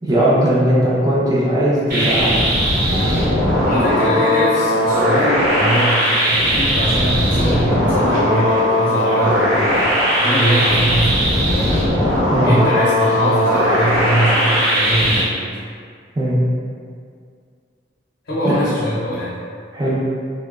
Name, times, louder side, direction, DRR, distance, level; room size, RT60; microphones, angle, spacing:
voice 1, 0.0-2.4 12.3-12.6 16.2-16.4 18.4-18.5 19.7-20.0, right 1 dB, 20° right, -8 dB, 0.5 m, -17 dB
sound 1, 1.9-15.2, equal, 50° right, 0.9 m, -18 dB
sound 2, 2.9-15.0, right 1 dB, 80° right, 0.4 m, -31 dB
voice 2, 3.6-9.9 10.2-11.7 12.4-15.4 18.2-19.4, right 1 dB, 65° left, -9 dB, 0.6 m, -22 dB
2.8 x 2.0 x 2.3 m, 2.2 s
head